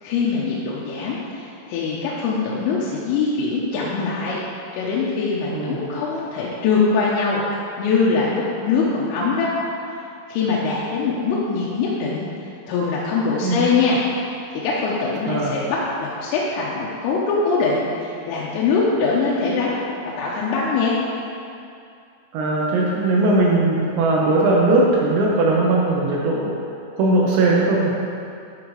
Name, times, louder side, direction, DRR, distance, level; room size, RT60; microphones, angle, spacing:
voice 1, 0.0-4.4 4.7-9.5 10.3-12.3 12.7-14.0 14.5-19.8 20.2-21.0, left 4 dB, 90° left, -6 dB, 3.5 m, -22 dB
voice 2, 22.3-26.5 27.0-27.9, right 2 dB, 75° right, -4 dB, 2.8 m, -19 dB
11.0 x 6.0 x 3.2 m, 2.5 s
omnidirectional pair, 5.8 m